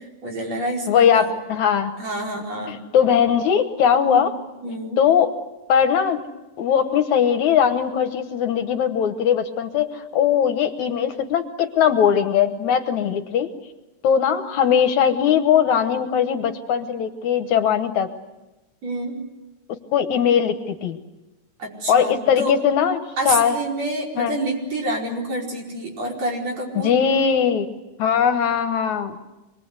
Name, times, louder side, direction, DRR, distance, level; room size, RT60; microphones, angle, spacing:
voice 1, 0.2-1.3 2.0-2.8 4.0-4.2 4.6-5.0 18.8-19.2 21.6-22.5 23.2-26.9, right 1 dB, 55° right, -1 dB, 6.0 m, -28 dB
voice 2, 0.9-2.0 2.7-4.3 5.0-5.3 5.7-6.2 6.6-13.5 14.0-18.1 19.9-21.0 21.9-23.0 23.3-23.6 24.2-24.4 26.8-27.7 28.0-29.2, left 8 dB, 70° left, 8 dB, 2.4 m, -20 dB
26.0 x 21.5 x 8.1 m, 1.0 s
omnidirectional pair, 3.7 m